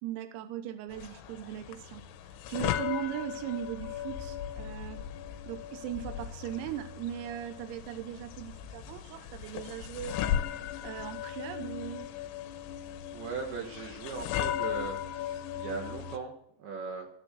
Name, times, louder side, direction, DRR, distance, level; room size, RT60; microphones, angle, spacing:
voice 1, 0.0-2.0 2.5-5.0 5.5-10.2 10.8-12.1, right 11 dB, 90° right, 9 dB, 3.8 m, -39 dB
sound 1, 0.9-16.2, left 10 dB, 85° left, 3.5 m, -37 dB
voice 2, 13.1-17.1, right 5 dB, 65° right, 1 dB, 3.6 m, -39 dB
14.5 x 10.5 x 7.8 m, 0.66 s
omnidirectional pair, 6.0 m